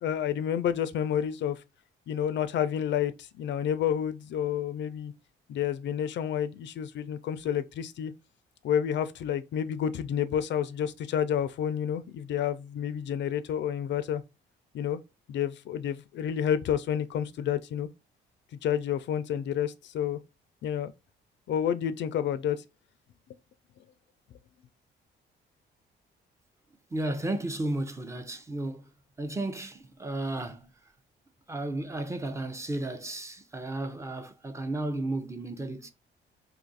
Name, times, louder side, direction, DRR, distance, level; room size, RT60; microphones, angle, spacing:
voice 1, 0.0-1.6 2.1-5.1 5.5-8.1 8.6-14.2 14.7-15.0 15.3-17.9 18.6-20.2 20.6-20.9 21.5-22.6, left 9 dB, 65° left, 0.4 m, -29 dB
voice 2, 26.9-28.8 29.2-30.7 31.5-35.9, right 2 dB, 15° right, 0.6 m, -33 dB
2.7 x 2.5 x 3.9 m
cardioid pair, 90°, 20 cm